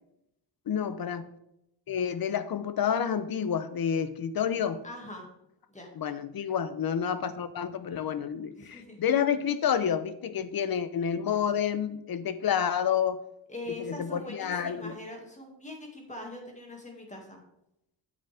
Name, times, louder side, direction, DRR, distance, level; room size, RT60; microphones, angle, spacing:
voice 1, 0.7-1.2 1.9-4.8 6.0-13.2 13.8-14.9, left 8 dB, 55° left, 13 dB, 0.8 m, -29 dB
voice 2, 4.8-5.3 5.7-5.9 8.6-9.0 13.5-17.4, left 2 dB, 15° left, 1 dB, 2.2 m, -42 dB
9.1 x 8.2 x 3.5 m, 0.82 s
wide cardioid pair, 150°, 44 cm